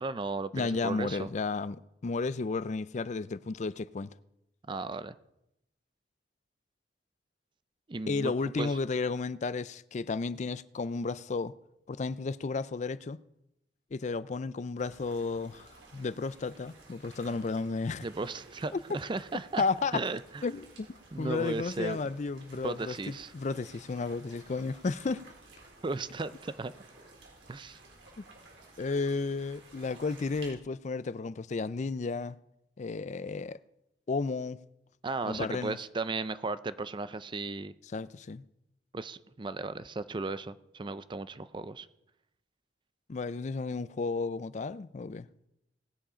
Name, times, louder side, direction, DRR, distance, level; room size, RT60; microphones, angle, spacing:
voice 1, 0.0-1.3 4.7-5.2 7.9-8.8 18.0-19.6 19.9-20.4 21.1-22.0 22.6-23.3 25.8-26.7 27.5-27.8 35.0-37.7 38.9-41.9, right 3 dB, 25° right, 0.4 m, -35 dB
voice 2, 0.5-4.1 8.1-11.5 11.9-13.2 13.9-18.1 18.7-18.8 19.6-20.0 20.4-20.9 21.2-25.2 28.2-28.3 28.8-32.4 32.8-33.6 34.1-34.6 35.2-35.8 37.9-38.4 43.1-45.3, left 4 dB, 40° left, 0.4 m, -33 dB
sound 1, 14.8-30.5, right 3 dB, 85° right, 3.7 m, -55 dB
18.5 x 7.4 x 5.1 m
head